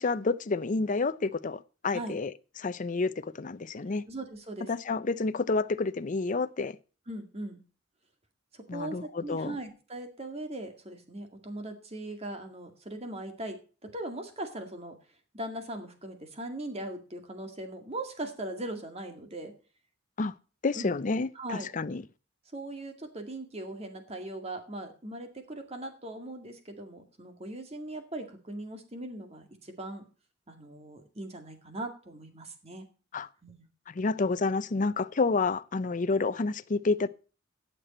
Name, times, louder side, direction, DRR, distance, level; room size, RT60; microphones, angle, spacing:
voice 1, 0.0-4.0 4.7-6.8 8.7-9.6 20.2-20.3 20.6-22.0 33.1-33.3 33.9-37.1, left 3 dB, 40° left, 0.5 m, -29 dB
voice 2, 4.1-4.7 7.1-7.6 8.5-14.9 15.3-19.5 20.8-20.9 21.4-21.7 22.5-30.0 30.5-32.9 33.4-33.7, right 1 dB, 35° right, 2.1 m, -39 dB
18.0 x 6.8 x 4.3 m
head